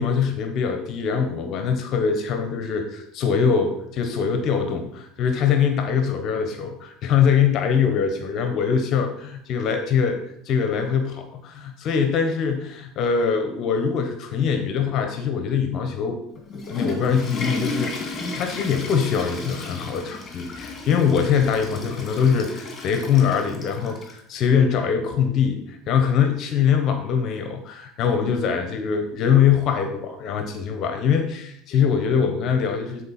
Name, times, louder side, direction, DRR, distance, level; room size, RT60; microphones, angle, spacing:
voice 1, 0.0-10.2 10.4-16.2 16.5-33.0, left 7 dB, 50° left, 6 dB, 1.1 m, -23 dB
Water / Toilet flush, 16.4-24.2, left 3 dB, 30° left, 2.2 m, -33 dB
9.8 x 4.4 x 4.3 m, 0.72 s
supercardioid pair, 120°, 0 cm